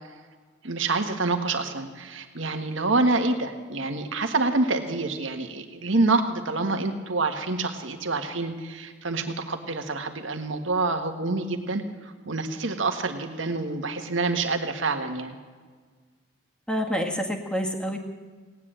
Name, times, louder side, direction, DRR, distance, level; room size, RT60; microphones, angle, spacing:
voice 1, 0.6-15.4, right 3 dB, 75° right, 6 dB, 1.7 m, -27 dB
voice 2, 16.7-18.0, equal, 5° left, 2 dB, 1.7 m, -27 dB
18.0 x 10.5 x 7.7 m, 1.5 s
head